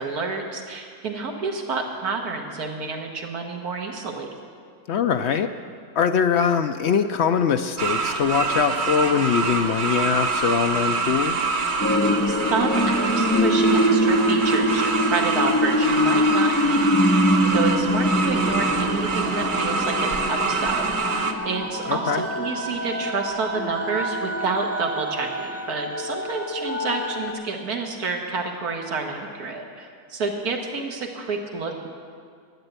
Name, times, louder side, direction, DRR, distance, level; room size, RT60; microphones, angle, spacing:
voice 1, 0.0-4.3 12.3-17.3 17.5-31.9, right 4 dB, 75° right, 2 dB, 1.8 m, -29 dB
voice 2, 4.9-5.5 6.0-11.4 21.9-22.2, left 7 dB, 70° left, 8 dB, 0.6 m, -22 dB
sound 1, 7.8-21.3, right 4 dB, 45° right, 0.7 m, -26 dB
sound 2, 11.8-27.3, equal, 15° left, 0.4 m, -24 dB
12.0 x 9.8 x 8.0 m, 2.2 s
omnidirectional pair, 1.6 m